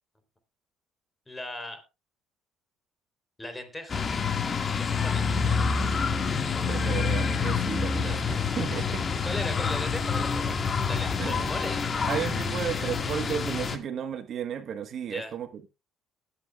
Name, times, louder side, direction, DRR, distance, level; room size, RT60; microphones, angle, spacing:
voice 1, 1.3-1.8 3.4-4.2 4.8-5.3 9.2-11.9 15.1-15.3, left 1 dB, 15° left, 3.7 m, -38 dB
sound 1, 3.9-13.8, left 5 dB, 40° left, 1.9 m, -27 dB
voice 2, 6.7-9.0 11.2-11.5 12.1-15.7, right 8 dB, 55° right, 1.3 m, -34 dB
19.5 x 8.7 x 2.4 m
supercardioid pair, 85°, 0 cm